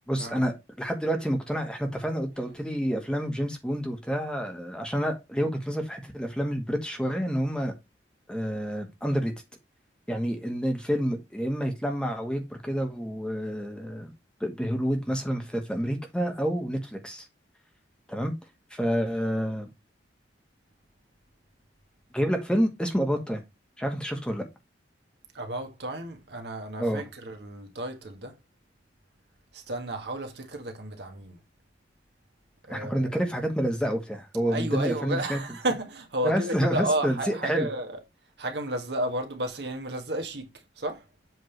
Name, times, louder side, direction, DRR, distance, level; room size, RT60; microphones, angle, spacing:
voice 1, 0.1-7.7 8.3-9.3 10.1-14.1 14.4-17.2 18.1-18.3 18.7-19.7 22.1-23.4 23.8-24.4 26.8-27.0 32.7-35.4 36.2-37.7, equal, 5° left, 1.3 m, -28 dB
voice 2, 25.3-28.4 29.5-31.4 32.7-33.2 34.5-38.0 38.4-40.5 40.8-41.0, right 1 dB, 65° right, 1.6 m, -32 dB
8.0 x 3.6 x 4.5 m
head